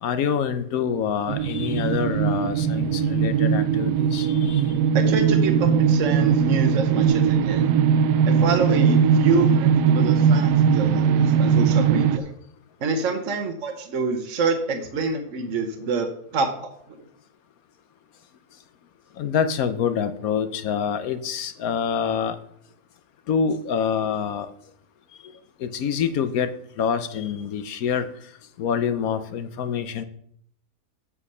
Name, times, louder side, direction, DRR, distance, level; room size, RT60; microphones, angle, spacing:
voice 1, 0.0-4.6 10.1-10.2 19.2-22.4 23.3-24.5 25.6-26.5 26.8-28.1 28.6-30.0, left 7 dB, 65° left, 10 dB, 1.1 m, -26 dB
sound 1, 1.3-12.2, right 7 dB, 85° right, 1.1 m, -20 dB
voice 2, 4.9-7.7 8.2-12.3 12.8-17.0, right 3 dB, 55° right, 4 dB, 1.1 m, -27 dB
8.0 x 6.1 x 5.5 m, 0.66 s
omnidirectional pair, 1.7 m